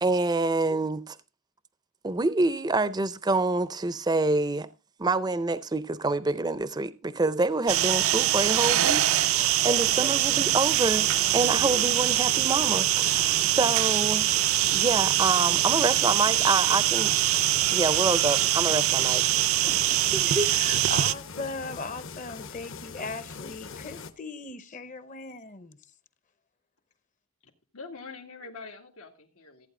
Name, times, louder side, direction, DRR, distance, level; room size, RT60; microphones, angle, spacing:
voice 1, 0.0-1.2 2.0-4.7 5.0-9.0 9.3-11.0 11.3-14.2 14.7-17.2 17.7-19.2 20.1-20.5, right 3 dB, 20° right, 0.5 m, -26 dB
sound 1, 7.7-21.1, right 13 dB, 70° right, 0.5 m, -23 dB
sound 2, 10.7-24.1, left 5 dB, 60° left, 1.1 m, -42 dB
voice 2, 19.6-25.8, left 3 dB, 35° left, 0.7 m, -38 dB
voice 3, 27.7-29.7, left 4 dB, 90° left, 2.0 m, -44 dB
15.0 x 8.9 x 3.7 m
head